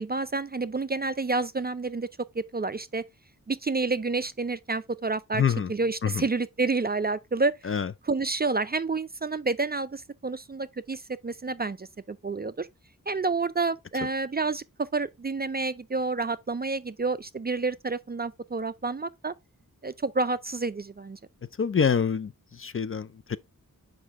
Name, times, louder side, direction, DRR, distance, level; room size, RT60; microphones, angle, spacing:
voice 1, 0.0-2.1 2.3-3.1 3.5-5.4 5.7-7.7 8.0-12.7 13.1-19.3 19.8-21.2, right 3 dB, 30° right, 0.4 m, -29 dB
voice 2, 5.3-5.7 6.0-6.1 7.6-7.9 21.6-22.3 22.6-23.4, left 7 dB, 40° left, 0.4 m, -25 dB
6.4 x 5.1 x 3.4 m
wide cardioid pair, 65°, 35 cm